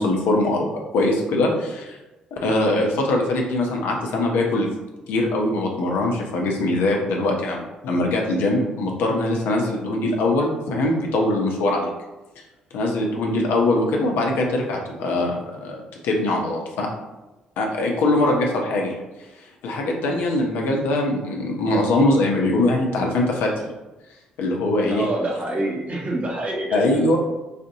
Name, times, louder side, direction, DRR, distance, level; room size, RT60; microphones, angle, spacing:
voice 1, 0.0-2.0 2.3-4.7 5.1-11.9 12.7-16.9 17.6-19.0 19.6-23.7 24.4-25.0 26.7-27.2, left 2 dB, 65° left, 0 dB, 0.6 m, -22 dB
voice 2, 24.9-26.9, right 1 dB, 40° right, -2 dB, 1.1 m, -26 dB
4.1 x 2.6 x 2.6 m, 1.1 s
hypercardioid pair, 45°, 4 cm